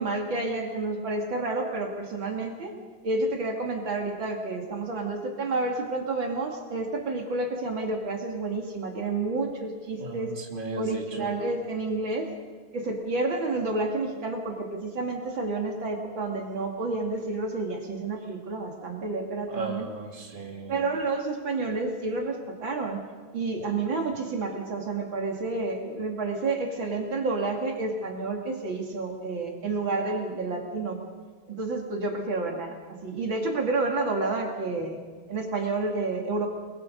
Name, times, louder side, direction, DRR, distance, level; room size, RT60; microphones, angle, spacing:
voice 1, 0.0-2.7 3.0-10.3 10.8-12.3 12.7-19.9 20.7-23.0 23.3-31.0 31.5-32.8 33.0-35.0 35.3-36.5, right 3 dB, 65° right, 2 dB, 3.2 m, -30 dB
voice 2, 10.0-11.0 19.5-20.7, right 3 dB, 25° right, 1 dB, 3.0 m, -35 dB
29.5 x 21.5 x 5.3 m, 1.5 s
omnidirectional pair, 2.3 m